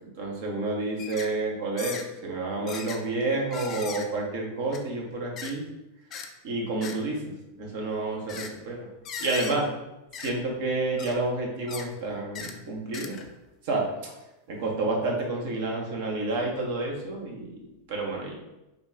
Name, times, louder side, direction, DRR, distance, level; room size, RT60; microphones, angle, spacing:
voice 1, 0.2-5.7 6.4-7.2 7.6-8.9 9.2-9.7 10.2-13.2 13.6-14.1 14.5-17.6 17.9-18.3, right 2 dB, 60° right, -1 dB, 0.9 m, -29 dB
sound 1, 1.0-1.3 1.8-2.1 2.7-3.0 3.5-4.1 4.7-4.8 5.4-5.5 6.1-6.3 6.8-7.0 8.3-8.5 9.1-9.6 10.1-10.3 11.0-11.2 11.7-11.9 12.4-12.5 12.9-13.3 13.9-14.0, left 6 dB, 35° left, 0.4 m, -38 dB
3.6 x 2.3 x 3.6 m, 0.97 s
figure-of-eight pair, 90°, 0 cm